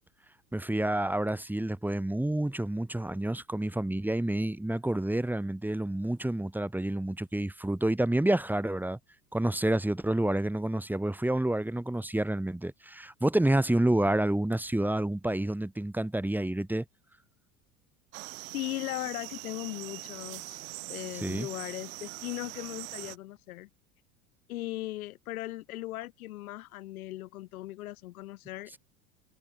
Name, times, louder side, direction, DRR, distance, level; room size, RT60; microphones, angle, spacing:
voice 1, 0.5-9.0 9.3-16.8 21.2-21.5, right 1 dB, 5° right, 1.4 m, -29 dB
sound 1, 18.1-23.2, right 25 dB, 60° right, 2.3 m, -42 dB
voice 2, 18.5-20.6 20.9-23.7 24.5-28.8, left 16 dB, 70° left, 1.1 m, -38 dB
figure-of-eight pair, 75°, 45 cm